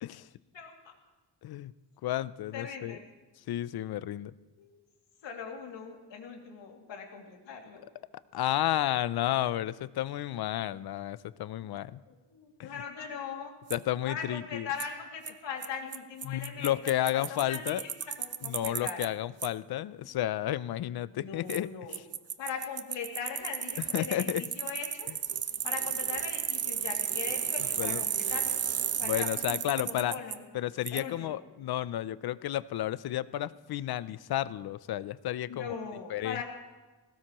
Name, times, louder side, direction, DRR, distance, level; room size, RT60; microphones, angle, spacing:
voice 1, 2.0-3.0 3.5-4.3 8.3-12.0 12.6-12.7 13.7-14.7 16.2-17.8 18.4-22.0 23.8-24.4 27.8-28.0 29.0-30.1 30.5-35.8 36.1-36.4, left 13 dB, 60° left, 17 dB, 0.5 m, -32 dB
voice 2, 2.5-3.0 4.6-4.8 5.2-7.9 12.1-13.5 14.1-16.8 17.1-19.0 20.0-20.1 21.1-22.0 22.4-25.1 25.6-28.6 29.0-30.5 30.9-31.4 35.5-36.4, left 6 dB, 90° left, 1 dB, 2.5 m, -40 dB
Bicycle, 13.7-13.8 14.8-14.9 15.3-15.4 15.6-15.7 15.9-19.1 19.4-19.5 21.5-21.6 21.9-30.4 30.9-31.0, right 8 dB, 35° right, 0.5 m, -33 dB
20.5 x 17.5 x 3.0 m, 1.2 s
wide cardioid pair, 160°, 43 cm